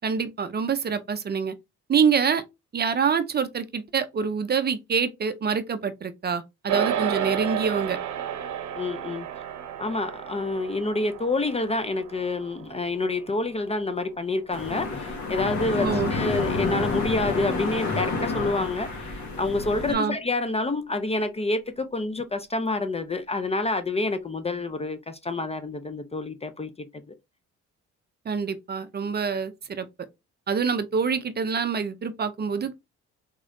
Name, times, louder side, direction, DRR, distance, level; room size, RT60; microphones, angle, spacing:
voice 1, 0.0-1.5 1.9-2.4 2.7-8.0 15.8-16.1 19.9-20.2 28.3-29.9 30.5-32.8, right 6 dB, 35° right, 0.5 m, -26 dB
sound 1, 6.7-16.2, right 9 dB, 70° right, 0.7 m, -33 dB
voice 2, 8.8-9.3 9.8-27.1, left 2 dB, 20° left, 0.4 m, -28 dB
sound 2, 14.5-19.9, left 3 dB, 65° left, 1.3 m, -29 dB
3.6 x 3.1 x 2.5 m
cardioid pair, 90°, 30 cm